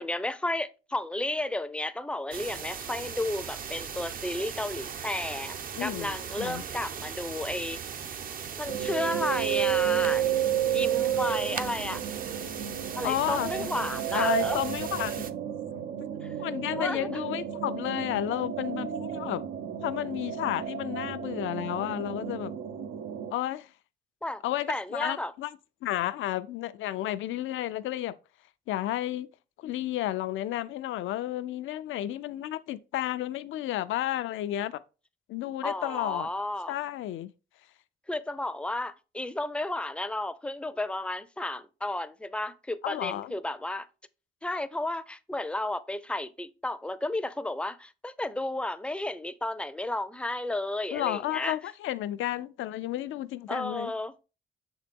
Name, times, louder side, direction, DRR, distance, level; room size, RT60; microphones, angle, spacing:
voice 1, 0.0-7.8 8.6-10.3 10.7-12.0 13.0-14.6 16.2-16.4 16.8-17.2 24.2-24.4 24.7-25.3 35.6-36.7 38.1-43.9 44.4-51.6 53.5-54.1, left 1 dB, 5° left, 0.4 m, -33 dB
sound 1, 2.3-15.3, right 7 dB, 45° right, 0.5 m, -39 dB
voice 2, 5.8-6.6 13.0-13.7 14.1-15.3 16.1-19.4 19.8-22.5 23.3-23.7 24.4-25.6 25.8-28.1 28.7-29.3 29.6-34.8 35.3-36.3 36.7-37.3 42.8-43.3 50.9-53.9, left 13 dB, 80° left, 0.5 m, -32 dB
sound 2, 8.7-23.3, right 10 dB, 85° right, 0.7 m, -31 dB
6.6 x 4.0 x 3.6 m
cardioid pair, 90°, 20 cm